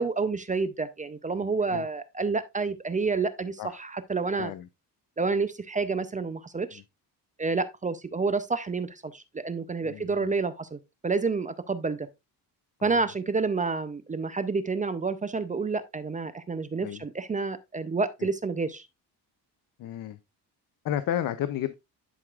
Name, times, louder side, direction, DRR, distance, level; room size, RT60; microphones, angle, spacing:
voice 1, 0.0-4.5 5.2-6.8 7.4-12.1 12.8-18.9, right 4 dB, 20° right, 0.5 m, -29 dB
voice 2, 9.8-10.3 12.8-13.0 16.8-17.0 19.8-20.2 20.8-21.7, left 11 dB, 55° left, 0.6 m, -32 dB
11.0 x 4.7 x 2.4 m
cardioid pair, 140°, 40 cm